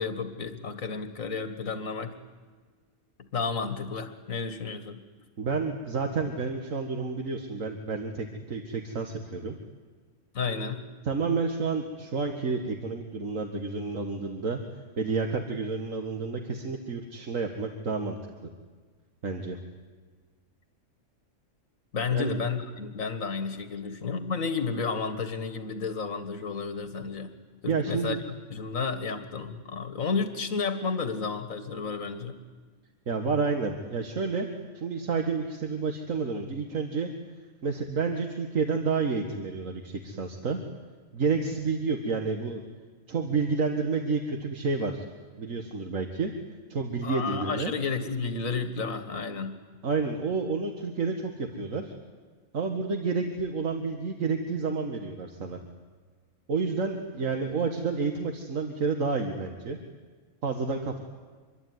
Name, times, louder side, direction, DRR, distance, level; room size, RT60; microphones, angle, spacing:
voice 1, 0.0-2.1 3.3-5.0 10.3-10.8 21.9-27.3 27.6-28.2 28.5-32.4 47.0-49.6, left 5 dB, 85° left, 9 dB, 2.1 m, -31 dB
voice 2, 5.4-9.6 11.0-14.6 15.0-18.2 19.2-19.6 22.1-22.3 27.7-28.2 33.1-34.5 34.8-37.1 37.6-40.6 41.1-42.6 43.1-45.1 45.4-46.3 46.7-47.7 49.8-51.9 52.5-55.6 56.5-59.8 60.4-61.0, right 4 dB, 75° right, 4 dB, 2.1 m, -30 dB
26.0 x 22.5 x 9.6 m, 1.5 s
omnidirectional pair, 1.4 m